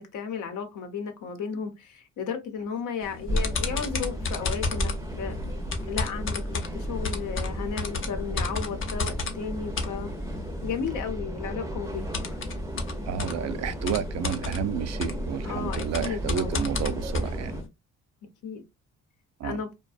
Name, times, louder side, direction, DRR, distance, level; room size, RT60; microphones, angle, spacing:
voice 1, 0.0-4.9 5.2-5.4 5.9-10.1 10.6-12.4 15.4-16.7 18.4-18.6 19.4-19.7, left 6 dB, 75° left, 0.8 m, -34 dB
sound 1, 3.0-10.9 11.8-17.7, left 4 dB, 45° left, 0.6 m, -34 dB
sound 2, 3.3-17.6, equal, 10° right, 0.5 m, -34 dB
voice 2, 13.1-17.6 19.4-19.6, right 8 dB, 60° right, 0.4 m, -31 dB
2.4 x 2.2 x 2.4 m
cardioid pair, 90°, 30 cm